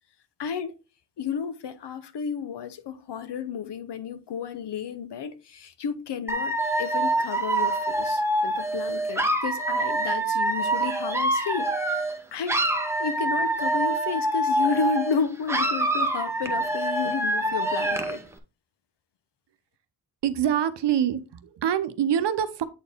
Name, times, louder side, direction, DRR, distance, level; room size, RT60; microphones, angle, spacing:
voice 1, 0.4-0.7 1.2-12.6 13.0-18.2, left 6 dB, 70° left, 0.9 m, -32 dB
Dog / Alarm, 6.3-12.2 12.5-15.2 15.5-18.2, right 1 dB, 5° right, 0.7 m, -25 dB
voice 2, 20.2-22.6, right 9 dB, 75° right, 0.8 m, -25 dB
8.2 x 4.3 x 3.5 m
wide cardioid pair, 170°, 42 cm